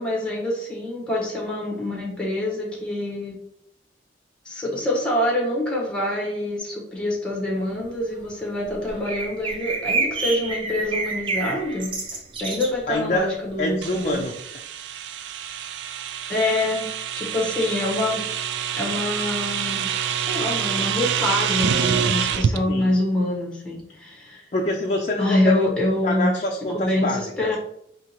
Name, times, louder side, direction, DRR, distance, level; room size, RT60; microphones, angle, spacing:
voice 1, 0.0-3.4 4.4-14.2 16.3-16.9 17.1-18.2 18.8-19.9 20.2-24.5 25.2-26.3 26.7-27.6, left 1 dB, 5° left, -3 dB, 1.1 m, -25 dB
sound 1, 8.2-8.3 8.7-12.9 13.2-13.3 13.4-13.9, right 3 dB, 30° right, 0.6 m, -28 dB
voice 2, 12.9-13.3 13.6-14.3 22.7-22.9 24.5-25.7 26.0-27.5, left 1 dB, 40° left, 0 dB, 0.5 m, -26 dB
sound 2, 13.8-22.6, right 8 dB, 70° right, 0.3 m, -26 dB
4.8 x 2.9 x 2.9 m, 0.71 s
head